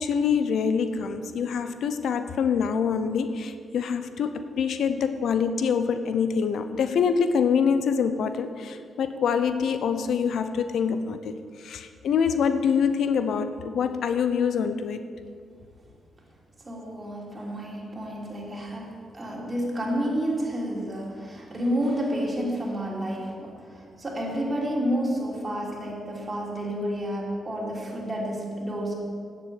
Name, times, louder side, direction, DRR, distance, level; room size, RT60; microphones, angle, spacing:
voice 1, 0.0-11.3 11.6-15.0, left 6 dB, 75° left, 10 dB, 0.6 m, -25 dB
voice 2, 16.6-28.9, equal, 30° right, -3 dB, 3.3 m, -30 dB
8.8 x 7.4 x 8.2 m, 2.1 s
cardioid pair, 65°, 0 cm